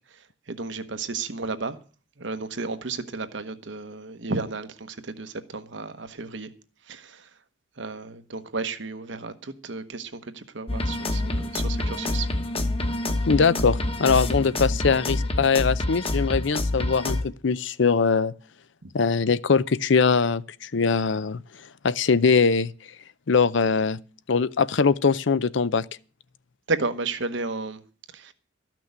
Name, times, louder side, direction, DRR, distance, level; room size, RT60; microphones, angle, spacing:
voice 1, 0.5-1.8 2.2-6.5 6.9-7.3 7.8-12.3 18.8-18.9 26.7-27.8 28.1-28.3, right 3 dB, 65° right, 1.1 m, -33 dB
sound 1, 10.7-17.2, left 2 dB, 30° left, 1.2 m, -27 dB
voice 2, 13.3-18.3 18.9-21.4 21.8-22.7 23.3-24.0 24.3-25.8, left 5 dB, 65° left, 0.6 m, -22 dB
13.5 x 6.1 x 9.4 m
head